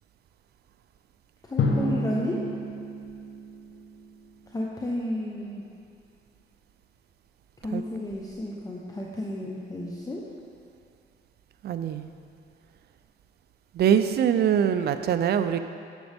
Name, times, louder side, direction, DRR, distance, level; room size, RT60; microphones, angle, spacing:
voice 1, 1.5-2.4 4.5-5.7 7.6-10.2, left 1 dB, 20° left, -3 dB, 0.9 m, -32 dB
Drum, 1.6-4.2, left 2 dB, 70° left, 1.1 m, -29 dB
voice 2, 11.6-12.1 13.7-15.6, right 8 dB, 55° right, 10 dB, 0.4 m, -23 dB
10.5 x 6.9 x 3.5 m, 2.4 s
cardioid pair, 90°, 20 cm